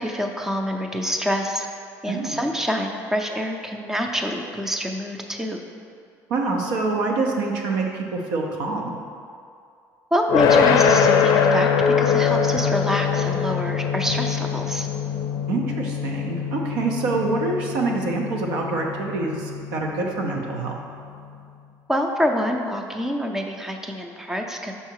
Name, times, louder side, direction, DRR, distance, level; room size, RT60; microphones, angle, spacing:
voice 1, 0.0-1.7 2.0-5.6 10.1-14.9 21.9-24.7, equal, 5° right, 3 dB, 0.4 m, -26 dB
voice 2, 2.1-2.4 6.3-9.0 15.5-20.7, right 3 dB, 90° right, 1 dB, 0.8 m, -26 dB
sound 1, 10.3-21.3, left 7 dB, 60° left, 0.4 m, -23 dB
5.6 x 3.9 x 4.6 m, 2.4 s
cardioid pair, 145°, 7 cm